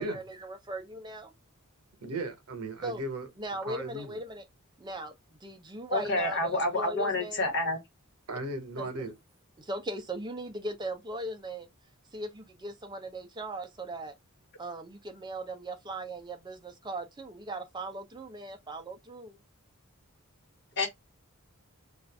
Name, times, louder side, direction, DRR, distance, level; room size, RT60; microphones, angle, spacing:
voice 1, 0.0-1.3 2.8-3.0 3.3-4.4 4.8-5.1 5.4-7.5 8.8-9.1 9.6-11.7 12.1-14.1 14.6-19.4, right 2 dB, 20° right, 0.5 m, -39 dB
voice 2, 2.0-3.3 3.7-4.2 8.3-9.1, right 2 dB, 85° right, 0.9 m, -36 dB
voice 3, 5.9-7.8 20.8-20.9, left 2 dB, 50° left, 1.2 m, -28 dB
2.5 x 2.4 x 3.3 m
head